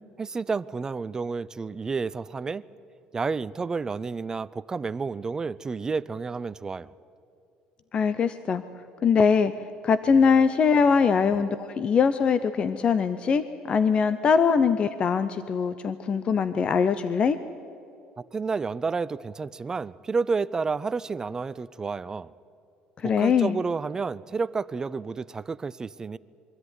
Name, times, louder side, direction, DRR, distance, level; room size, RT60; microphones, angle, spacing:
voice 1, 0.2-2.6 3.1-6.9 18.3-22.3 23.0-26.2, right 4 dB, 20° right, 18 dB, 0.4 m, -30 dB
voice 2, 7.9-8.6 9.0-9.5 9.8-17.4 23.0-23.6, left 6 dB, 35° left, 13 dB, 0.7 m, -22 dB
23.0 x 13.5 x 9.7 m, 2.7 s
cardioid pair, 130°, 3 cm